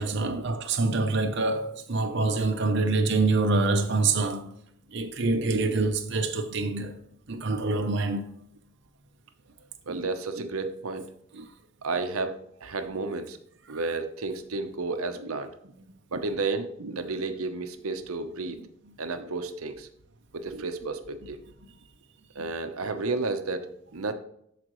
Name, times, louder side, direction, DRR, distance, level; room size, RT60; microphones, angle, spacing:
voice 1, 0.0-4.5 4.9-6.9 7.3-8.3, right 3 dB, 55° right, 0.7 m, -26 dB
voice 2, 9.9-11.1 11.3-11.5 11.8-13.4 13.7-15.5 16.1-18.6 19.0-19.9 20.3-21.4 22.3-24.1, right 3 dB, 85° right, 0.8 m, -32 dB
13.0 x 5.0 x 3.1 m
head